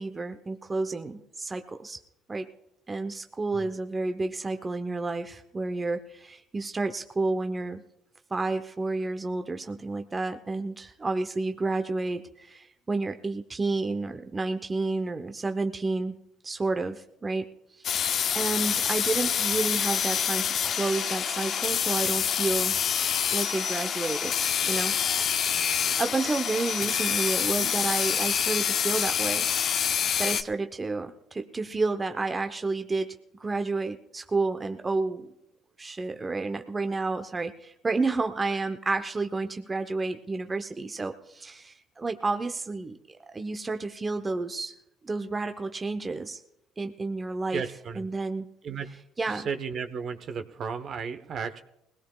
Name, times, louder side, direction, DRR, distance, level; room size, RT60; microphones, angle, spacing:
voice 1, 0.0-2.0 2.3-2.5 2.9-7.8 8.3-16.2 16.4-17.5 17.8-22.8 23.3-24.3 24.7-24.9 26.0-29.9 30.2-35.3 35.8-44.7 45.0-46.4 46.8-47.6 48.0-48.5 49.2-49.5, right 3 dB, 25° right, 7 dB, 0.8 m, -30 dB
sound 1, 17.8-30.4, left 8 dB, 50° left, 0.5 m, -27 dB
voice 2, 47.5-48.1 48.6-48.9 49.2-51.6, right 6 dB, 50° right, 9 dB, 1.0 m, -34 dB
20.5 x 17.0 x 2.4 m, 0.82 s
supercardioid pair, 80°, 0 cm